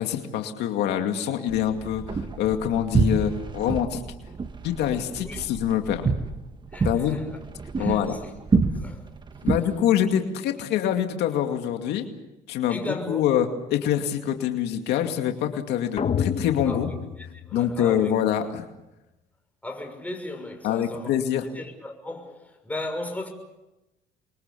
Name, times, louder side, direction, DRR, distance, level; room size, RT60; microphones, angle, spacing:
voice 1, 0.0-4.0 4.6-6.1 6.8-7.2 7.8-8.1 9.4-12.1 12.5-16.9 17.5-18.6 20.6-21.5, left 10 dB, 80° left, 5 dB, 2.3 m, -25 dB
sound 1, 1.5-9.6, right 4 dB, 25° right, 1.5 m, -28 dB
voice 2, 6.7-7.4 7.8-8.3 8.8-9.0 12.7-13.2 16.6-18.1 19.6-21.1 21.5-23.3, left 2 dB, 10° left, 4 dB, 6.3 m, -36 dB
sound 2, 16.0-18.1, left 7 dB, 40° left, 1.5 m, -29 dB
28.0 x 23.0 x 7.0 m, 0.97 s
cardioid pair, 110°, 17 cm